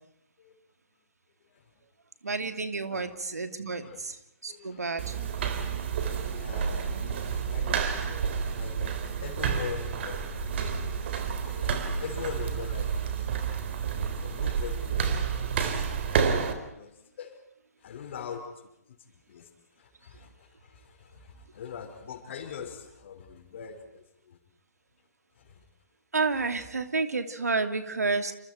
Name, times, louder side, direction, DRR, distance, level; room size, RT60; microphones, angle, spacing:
voice 1, 2.2-5.2 26.1-28.3, right 4 dB, 75° right, 8 dB, 2.9 m, -30 dB
voice 2, 4.5-5.4 5.7-11.1 11.4-13.4 13.7-16.0 16.8-17.4 17.8-19.0 19.3-19.5 19.8-24.4 25.4-25.7, left 7 dB, 45° left, 6 dB, 5.5 m, -43 dB
sound 1, 5.0-16.5, right 6 dB, 45° right, 3.8 m, -30 dB
28.5 x 27.5 x 4.6 m, 0.81 s
figure-of-eight pair, 135°, 9 cm